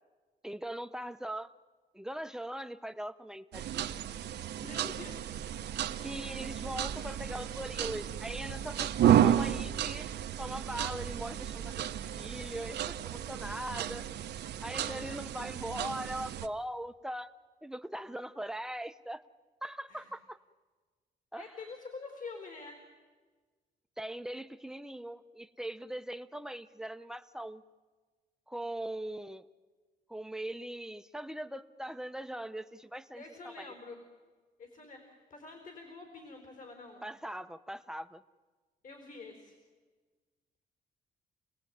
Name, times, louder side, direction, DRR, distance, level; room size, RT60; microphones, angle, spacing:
voice 1, 0.4-1.5 1.9-3.9 6.0-10.1 10.4-14.0 14.6-17.3 17.6-19.2 19.6-20.4 21.3-21.5 24.0-27.6 28.5-29.4 30.1-33.7 37.0-38.2, right 1 dB, 5° right, 10 dB, 0.7 m, -40 dB
sound 1, 3.5-16.5, right 10 dB, 85° right, 1.0 m, -32 dB
voice 2, 4.6-5.3 14.8-15.2 19.9-20.1 21.4-22.8 33.1-34.0 34.6-37.0 38.8-39.6, left 4 dB, 55° left, 4 dB, 4.2 m, -47 dB
28.5 x 18.5 x 9.2 m, 1.4 s
cardioid pair, 140°, 17 cm